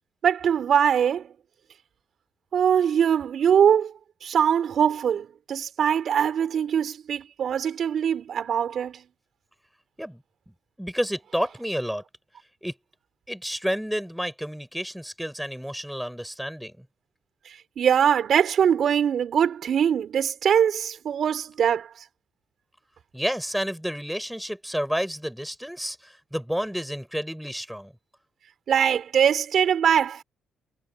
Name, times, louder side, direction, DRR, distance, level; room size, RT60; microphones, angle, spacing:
voice 1, 0.2-1.3 2.5-3.9 4.2-9.0 17.8-21.9 28.7-30.2, right 8 dB, 60° right, 7.0 m, -22 dB
voice 2, 10.8-12.0 12.6-12.7 13.3-16.8 23.1-27.9, equal, ahead, 7.3 m, -30 dB
cardioid pair, 90°, 0 cm